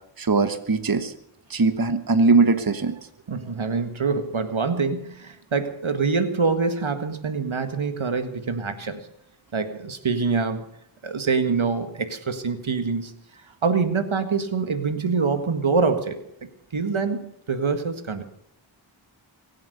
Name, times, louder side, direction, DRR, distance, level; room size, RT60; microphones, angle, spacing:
voice 1, 0.2-1.1 1.5-2.9, right 4 dB, 45° right, 10 dB, 1.3 m, -20 dB
voice 2, 3.3-9.1 9.5-10.6 11.0-13.1 13.6-16.2 16.7-18.2, right 4 dB, 75° right, 9 dB, 1.8 m, -25 dB
23.5 x 8.8 x 6.7 m, 0.77 s
cardioid pair, 45°, 48 cm